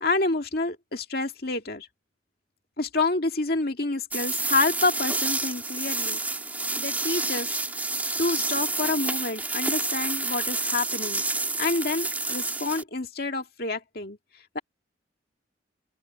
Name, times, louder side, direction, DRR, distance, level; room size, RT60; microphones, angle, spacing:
voice 1, 0.0-1.9 2.8-6.2 6.8-7.8 8.2-11.2 11.6-14.2 14.5-14.6, left 3 dB, 50° left, 2.2 m, -28 dB
sound 1, 4.1-12.8, right 3 dB, 10° right, 2.8 m, -29 dB
open air
head